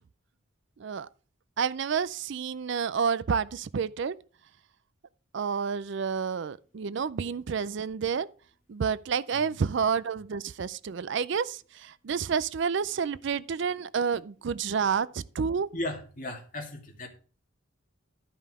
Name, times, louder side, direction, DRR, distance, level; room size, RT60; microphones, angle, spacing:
voice 1, 1.6-4.1 5.3-8.3 8.7-15.7, right 6 dB, 55° right, 0.4 m, -29 dB
voice 2, 9.3-9.6 15.7-17.1, left 1 dB, 40° left, 2.4 m, -36 dB
12.5 x 5.5 x 4.8 m
head